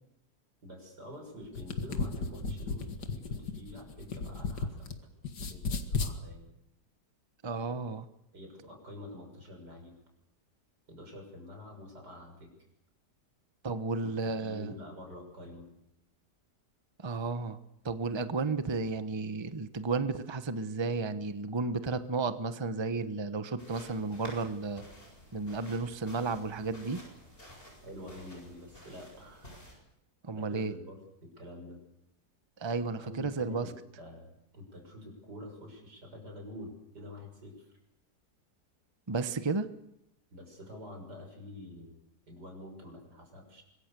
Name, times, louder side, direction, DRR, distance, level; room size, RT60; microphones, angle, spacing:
voice 1, 0.6-4.9 5.4-6.5 8.3-10.0 10.9-12.5 14.0-15.7 27.8-29.5 30.3-31.8 32.9-37.7 40.3-42.0 42.3-43.6, left 1 dB, 90° right, 3 dB, 7.1 m, -47 dB
sound 1, 1.4-4.9 5.2-6.2, left 4 dB, 90° left, 2.4 m, -34 dB
voice 2, 7.4-8.1 13.6-14.7 17.0-17.6 17.8-24.8 25.3-27.0 30.2-30.7 32.6-33.7 39.1-39.7, right 4 dB, 20° right, 11 dB, 1.0 m, -33 dB
sound 2, 23.6-29.7, left 1 dB, 35° left, 7.9 m, -52 dB
25.0 x 22.5 x 6.9 m, 0.83 s
omnidirectional pair, 1.7 m